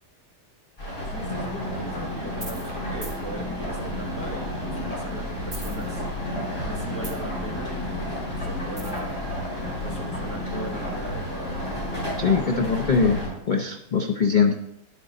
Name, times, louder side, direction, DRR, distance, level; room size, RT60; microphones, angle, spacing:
sound 1, 0.8-13.3, left 1 dB, 30° left, 4.8 m, -34 dB
voice 1, 1.0-6.1 6.6-8.1 8.4-9.2 9.8-11.6, right 1 dB, 10° left, 0 dB, 0.9 m, -39 dB
sound 2, 1.2-13.3, equal, 45° left, 4.0 m, -34 dB
sound 3, 2.4-2.7 3.0-3.2 5.4-6.3 6.6-7.4 8.8-9.1, right 1 dB, 25° right, 2.2 m, -38 dB
voice 2, 12.2-13.2 13.5-14.6, left 5 dB, 70° left, 4 dB, 0.4 m, -22 dB
10.5 x 8.3 x 3.7 m, 0.79 s
omnidirectional pair, 1.8 m